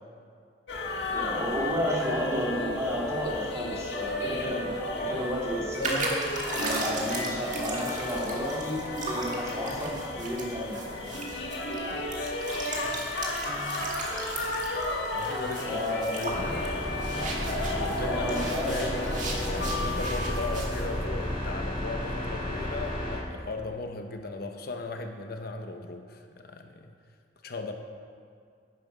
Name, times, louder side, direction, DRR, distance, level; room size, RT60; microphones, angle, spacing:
sound 1, 0.7-20.3, left 2 dB, 90° left, 1.6 m, -33 dB
voice 1, 1.1-6.1 6.5-10.9 15.6-16.1 18.0-18.9, equal, 20° right, -5 dB, 2.6 m, -32 dB
sound 2, 5.8-18.0 18.3-20.8, right 2 dB, 45° right, 1.9 m, -37 dB
voice 2, 11.9-12.4 13.7-13.9 15.1-16.7 17.4-26.9 27.4-27.7, left 2 dB, 60° left, 5 dB, 0.7 m, -37 dB
sound 3, 16.3-23.2, left 1 dB, 35° left, 2.6 m, -32 dB
11.0 x 9.5 x 5.4 m, 2.3 s
head